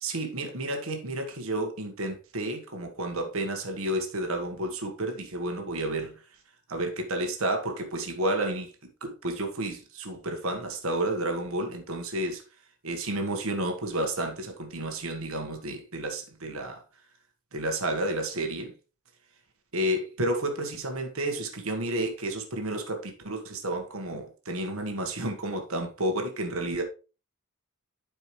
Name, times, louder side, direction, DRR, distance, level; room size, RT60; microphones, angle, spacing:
voice 1, 0.0-6.1 6.7-8.7 9.0-12.4 12.8-16.8 17.5-18.7 19.7-26.8, right 1 dB, 65° right, 1.4 m, -31 dB
11.5 x 4.7 x 3.2 m
head